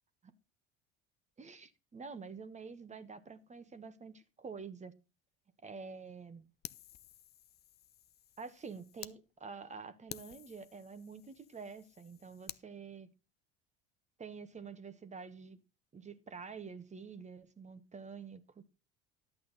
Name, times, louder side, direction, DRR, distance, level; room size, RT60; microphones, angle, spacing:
voice 1, 1.4-4.9 5.6-6.4 8.4-13.1 14.2-15.6 15.9-18.6, right 5 dB, 25° right, 1.2 m, -48 dB
Fire, 6.6-9.2 9.6-9.7 10.1-12.6, left 11 dB, 35° left, 0.5 m, -51 dB
11.0 x 8.4 x 4.0 m
hypercardioid pair, 70°, 29 cm